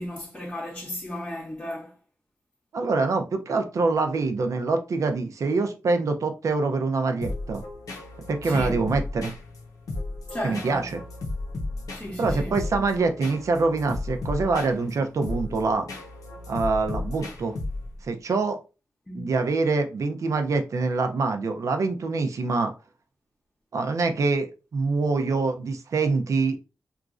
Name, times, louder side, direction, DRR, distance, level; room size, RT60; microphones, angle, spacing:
voice 1, 0.0-1.9 8.4-8.8 10.3-10.9 11.9-12.6 19.1-19.3, left 1 dB, 10° left, 0.8 m, -34 dB
voice 2, 2.7-7.6 8.3-9.3 10.4-11.0 12.2-15.9 16.5-17.5 18.0-18.6 19.1-22.7 23.7-26.6, right 3 dB, 60° right, 0.5 m, -25 dB
sound 1, 7.2-18.1, left 2 dB, 80° left, 0.7 m, -34 dB
2.9 x 2.4 x 2.4 m
cardioid pair, 65°, 6 cm